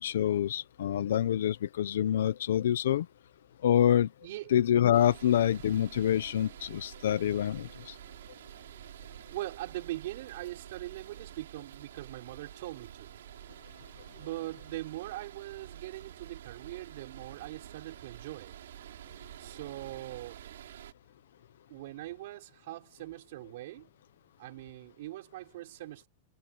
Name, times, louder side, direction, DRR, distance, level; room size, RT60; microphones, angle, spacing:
voice 1, 0.0-3.1 3.6-4.1 4.5-7.9, left 10 dB, 80° left, 1.1 m, -26 dB
voice 2, 4.2-4.5 9.3-13.2 14.2-18.6 19.4-20.4 21.7-23.9 24.4-26.1, right 16 dB, 55° right, 6.1 m, -41 dB
sound 1, 4.9-20.9, right 11 dB, 85° right, 6.7 m, -49 dB
supercardioid pair, 165°, 0 cm